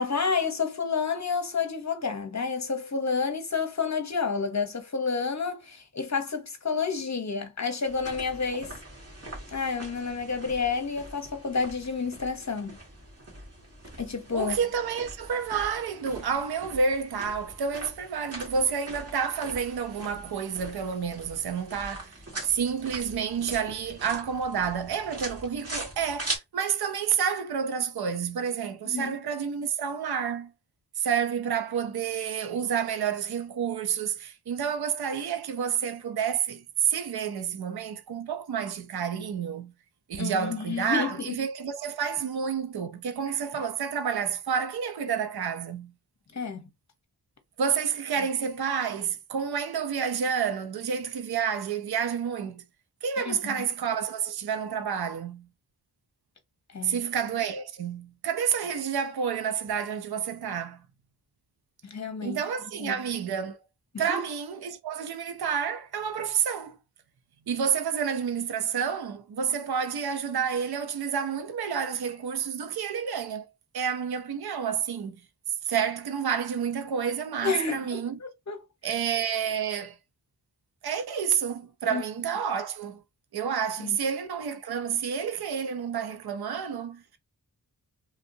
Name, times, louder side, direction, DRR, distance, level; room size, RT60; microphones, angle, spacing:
voice 1, 0.0-8.8 9.5-12.8 14.0-14.6 28.8-29.2 40.2-41.4 46.3-46.7 53.2-53.6 56.7-57.0 61.8-62.4 62.8-62.9 63.9-64.2 77.4-78.6 81.9-82.0 83.8-84.0, left 5 dB, 45° left, 0.9 m, -30 dB
sound 1, 7.9-26.4, right 2 dB, 35° right, 1.6 m, -42 dB
voice 2, 14.3-22.1 22.4-30.5 31.0-39.7 40.1-45.9 47.6-52.6 53.0-55.5 56.8-60.8 62.2-63.6 64.0-66.8 67.5-73.5 73.7-75.2 75.7-78.2 78.8-80.0 80.8-83.0 83.3-87.0, right 7 dB, 70° right, 0.6 m, -29 dB
3.2 x 2.6 x 2.6 m
cardioid pair, 50°, 40 cm